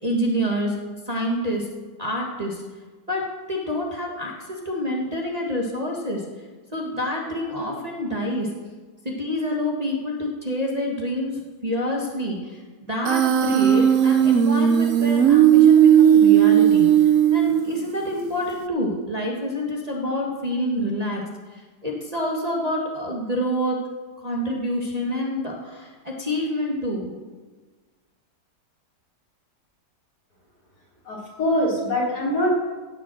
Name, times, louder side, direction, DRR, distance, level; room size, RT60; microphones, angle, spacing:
voice 1, 0.0-0.8 1.1-1.7 2.0-2.6 3.1-6.2 6.7-8.5 9.1-12.6 12.9-16.9 17.3-21.2 21.5-23.8 24.2-27.1, equal, 20° right, -3 dB, 1.9 m, -27 dB
Human voice, 13.0-18.0, right 10 dB, 60° right, 0.9 m, -16 dB
voice 2, 31.0-32.8, equal, 60° left, -4 dB, 4.2 m, -23 dB
17.0 x 6.0 x 7.8 m, 1.4 s
omnidirectional pair, 2.0 m